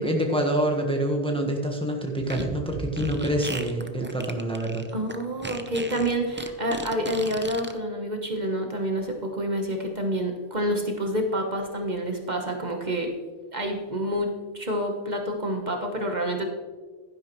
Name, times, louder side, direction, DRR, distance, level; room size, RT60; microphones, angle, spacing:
voice 1, 0.0-4.9, right 1 dB, 5° left, 1 dB, 1.2 m, -26 dB
Fart, 2.2-7.7, right 2 dB, 15° right, 0.5 m, -36 dB
voice 2, 4.9-13.1 13.5-16.4, equal, 45° right, 2 dB, 1.2 m, -28 dB
11.5 x 10.5 x 3.1 m, 1.4 s
omnidirectional pair, 1.1 m